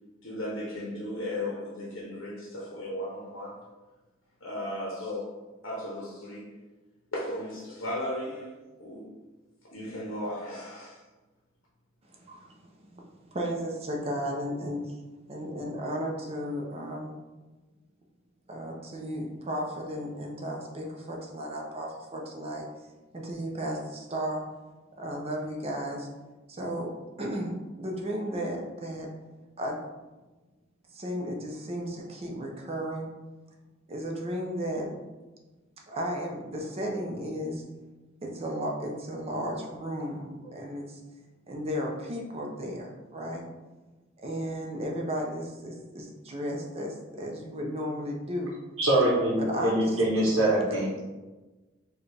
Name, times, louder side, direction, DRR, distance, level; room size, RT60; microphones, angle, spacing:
voice 1, 0.2-3.6 4.4-6.5 7.1-9.1 9.6-11.0, left 1 dB, 75° left, 0.7 m, -36 dB
voice 2, 12.1-15.0 15.3-17.2 18.5-22.6 23.1-24.4 25.0-26.1 26.5-26.9 27.2-29.1 29.6-29.8 30.9-33.1 33.9-34.9 35.9-37.6 38.2-41.0 41.5-43.4 44.2-48.5 49.4-50.1, equal, 30° right, 0.6 m, -34 dB
voice 3, 48.8-51.1, right 1 dB, 90° right, 0.8 m, -24 dB
4.4 x 2.3 x 3.3 m
head